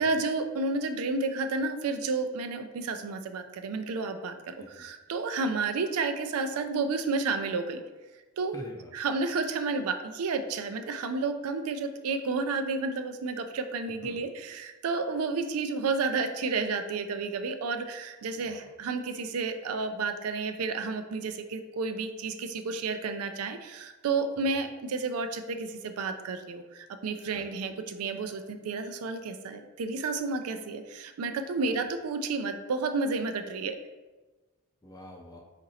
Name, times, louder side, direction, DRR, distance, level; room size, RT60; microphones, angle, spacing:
voice 1, 0.0-7.8 8.4-8.5 8.9-33.8, right 4 dB, 85° right, 8 dB, 0.4 m, -31 dB
voice 2, 8.5-8.9 13.9-14.3 18.4-18.7 24.4-24.5 27.3-27.5 31.6-31.8 34.8-35.4, equal, 15° left, 1 dB, 0.4 m, -46 dB
4.0 x 2.5 x 4.0 m, 1.2 s
head